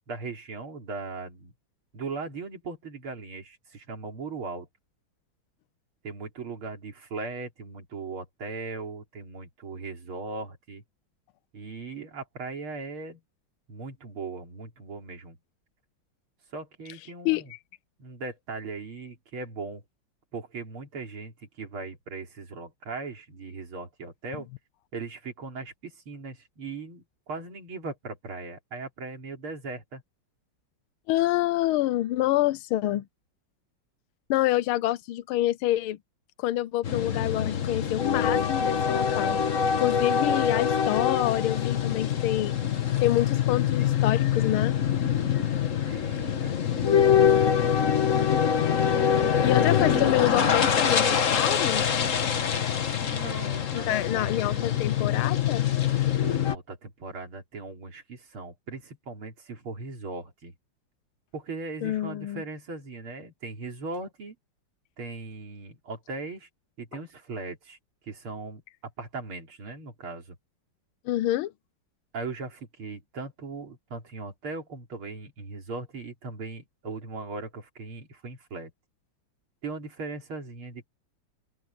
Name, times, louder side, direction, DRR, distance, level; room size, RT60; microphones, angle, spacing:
voice 1, 0.1-1.5 1.9-4.7 6.0-10.8 11.5-13.2 13.7-15.4 16.5-17.5 18.0-19.8 20.3-24.5 24.9-30.0 45.8-47.7 53.0-54.6 56.2-60.5 61.3-64.4 65.0-66.5 66.8-67.8 68.1-68.6 69.0-70.4 72.1-78.7 79.6-80.9, right 3 dB, 85° right, 4.1 m, -38 dB
voice 2, 31.1-33.0 34.3-36.0 36.4-39.4 39.8-42.6 43.0-44.8 49.4-51.9 53.7-55.7 61.8-62.4 71.0-71.5, left 15 dB, 85° left, 1.5 m, -27 dB
sound 1, 36.8-56.6, left 8 dB, 45° left, 1.4 m, -24 dB
open air
omnidirectional pair, 2.3 m